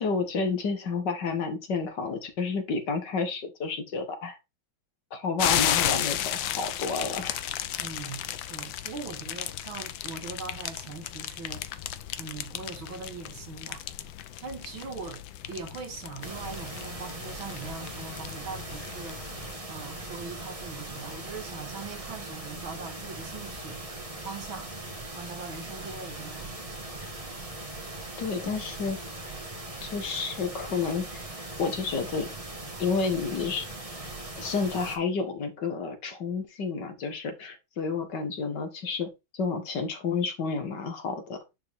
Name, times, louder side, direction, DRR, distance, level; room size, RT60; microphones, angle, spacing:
voice 1, 0.0-4.4 5.1-7.4 28.2-29.0 29.8-31.1 31.6-32.3 32.8-33.7 34.4-41.4, left 4 dB, 60° left, 2.2 m, -30 dB
sound 1, 5.4-19.6, left 11 dB, 75° left, 1.5 m, -34 dB
voice 2, 7.8-11.7 12.2-13.8 14.4-23.8 24.2-24.7 25.1-26.7, right 4 dB, 90° right, 2.8 m, -41 dB
sound 2, 16.2-35.0, right 2 dB, 20° right, 1.6 m, -40 dB
10.5 x 4.7 x 3.6 m
omnidirectional pair, 2.1 m